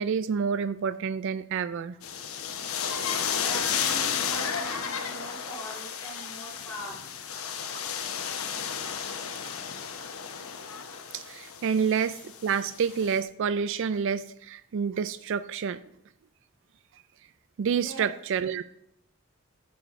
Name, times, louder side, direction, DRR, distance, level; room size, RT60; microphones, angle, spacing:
voice 1, 0.0-2.0 11.1-15.8 17.6-18.6, right 6 dB, 60° right, 14 dB, 0.3 m, -28 dB
sound 1, 2.0-13.2, left 7 dB, 75° left, 0.9 m, -33 dB
voice 2, 3.3-7.0 17.8-18.1, equal, 15° left, -5 dB, 4.0 m, -41 dB
11.0 x 7.1 x 3.6 m, 0.72 s
head